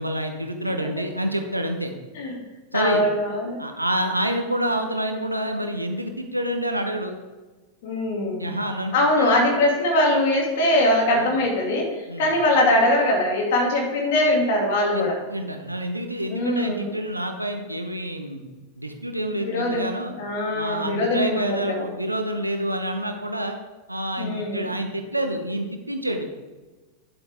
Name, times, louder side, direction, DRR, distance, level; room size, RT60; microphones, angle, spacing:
voice 1, 0.0-1.9 2.7-3.1 3.6-7.2 8.4-9.5 11.1-11.3 12.1-12.3 14.9-18.4 18.8-20.1 20.5-23.6 23.9-26.3, right 1 dB, 85° right, 5 dB, 1.0 m, -28 dB
voice 2, 2.7-3.6 7.8-8.5 8.9-15.2 16.3-17.0 19.4-19.9 20.2-21.9 24.2-24.7, left 1 dB, 55° left, -1 dB, 2.5 m, -22 dB
10.0 x 7.9 x 3.6 m, 1.2 s
figure-of-eight pair, 90°, 0 cm